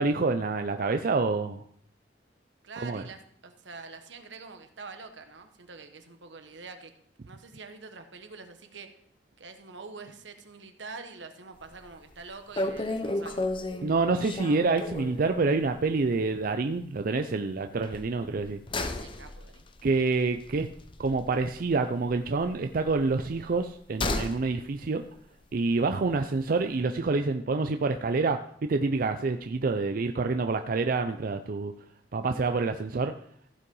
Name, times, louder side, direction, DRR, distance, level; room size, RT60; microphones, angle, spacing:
voice 1, 0.0-1.6 2.8-3.0 13.8-18.6 19.8-20.7 21.0-25.0 25.5-31.7 32.1-33.1, right 3 dB, 50° right, 7 dB, 0.5 m, -27 dB
voice 2, 2.6-6.9 7.3-8.9 9.4-13.5 18.8-19.7, right 4 dB, 80° right, 7 dB, 1.2 m, -45 dB
sound 1, 11.6-11.9 12.2-12.3 12.6-15.3 15.6-15.8 16.1-16.2 17.8-21.8 22.0-24.5 24.7-24.8, left 2 dB, 30° left, 0.7 m, -34 dB
15.0 x 5.5 x 5.4 m, 0.66 s
head